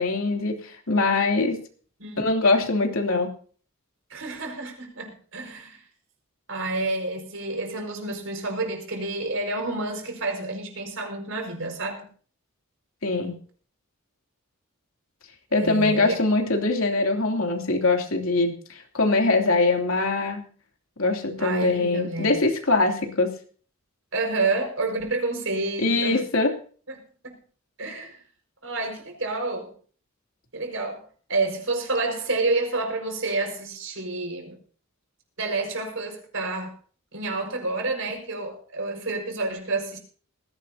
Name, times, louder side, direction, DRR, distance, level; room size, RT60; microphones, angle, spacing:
voice 1, 0.0-1.6 2.2-3.3 13.0-13.4 15.5-20.4 21.0-23.4 25.8-26.5, left 3 dB, 85° left, 3 dB, 3.0 m, -23 dB
voice 2, 4.1-5.8 6.5-12.1 15.6-16.2 21.4-22.3 24.1-26.3 26.9-27.4 27.8-28.2 28.6-29.7 30.5-34.6 35.4-36.7 37.1-40.0, right 2 dB, 75° right, 3 dB, 5.4 m, -29 dB
19.5 x 16.5 x 2.8 m, 0.43 s
head